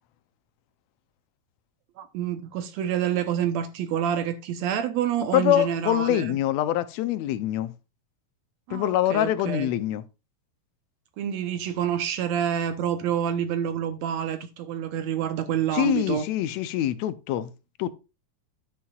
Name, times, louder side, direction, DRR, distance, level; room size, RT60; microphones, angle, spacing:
voice 1, 2.0-6.4 8.7-9.7 11.2-16.3, right 9 dB, 70° right, 1.9 m, -28 dB
voice 2, 5.3-7.7 8.7-10.0 15.7-17.5 17.8-17.9, left 13 dB, 75° left, 1.8 m, -24 dB
11.0 x 8.6 x 2.4 m
omnidirectional pair, 3.4 m